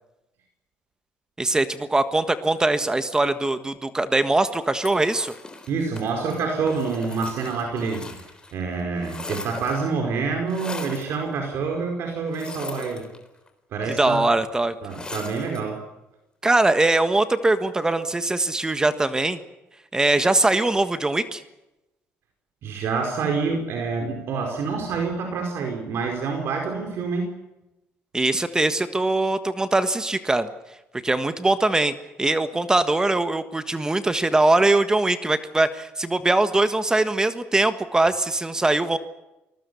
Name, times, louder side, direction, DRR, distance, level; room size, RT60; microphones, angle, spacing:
voice 1, 1.4-5.3 14.0-14.7 16.4-19.4 19.9-21.4 28.1-30.5 31.0-31.9 32.2-39.0, right 2 dB, 15° right, 11 dB, 1.5 m, -21 dB
sound 1, 4.8-8.5 8.8-10.0 10.5-11.2 12.3-13.5 14.9-15.7, left 3 dB, 20° left, 3.6 m, -39 dB
voice 2, 5.7-8.2 8.5-13.0 13.7-14.3 14.8-15.8 22.6-27.3, right 4 dB, 65° right, 3 dB, 4.9 m, -27 dB
27.0 x 20.0 x 7.0 m, 0.97 s
cardioid pair, 105°, 5 cm